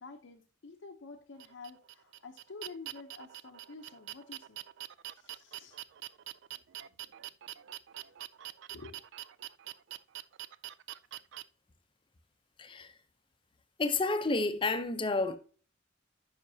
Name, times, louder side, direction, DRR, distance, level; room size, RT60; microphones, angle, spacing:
voice 1, 0.0-4.6 5.1-5.8 8.0-8.1 8.7-9.0, left 4 dB, 80° left, 0.7 m, -49 dB
sound 1, 1.4-11.4, right 14 dB, 70° right, 0.4 m, -45 dB
voice 2, 12.6-12.9 13.8-15.4, left 3 dB, 25° left, 0.6 m, -30 dB
9.4 x 5.7 x 2.7 m
head